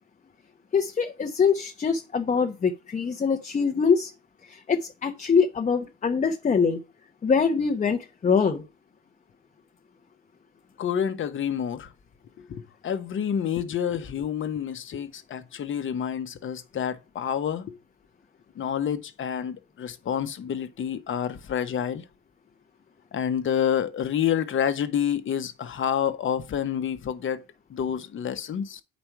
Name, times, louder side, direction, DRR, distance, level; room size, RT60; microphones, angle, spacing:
voice 1, 0.7-4.1 4.5-6.8 7.2-8.6, left 5 dB, 25° left, 1.0 m, -24 dB
voice 2, 10.8-11.9 12.4-17.8 18.5-22.0 23.1-27.4 27.7-28.8, left 8 dB, 40° left, 1.2 m, -28 dB
8.7 x 5.2 x 4.7 m
cardioid pair, 130°, 30 cm